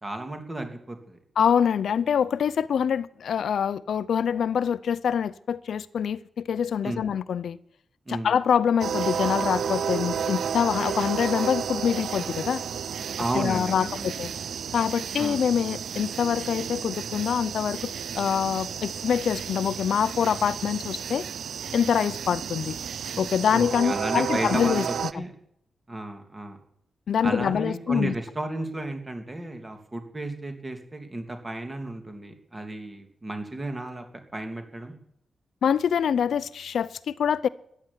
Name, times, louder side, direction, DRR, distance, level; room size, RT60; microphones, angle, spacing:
voice 1, 0.0-1.2 6.8-7.1 8.1-8.3 13.2-14.1 15.2-15.4 23.5-25.3 25.9-26.6 27.2-34.0 34.3-34.9, right 2 dB, 20° right, 2.8 m, -33 dB
voice 2, 1.4-7.6 8.1-12.6 13.3-14.3 14.7-21.2 21.7-22.7 23.2-24.9 25.1-25.2 27.1-28.1 35.6-37.5, left 8 dB, 70° left, 0.6 m, -25 dB
sound 1, 8.8-25.1, right 7 dB, 70° right, 0.7 m, -32 dB
14.5 x 10.5 x 9.7 m
wide cardioid pair, 150°, 0 cm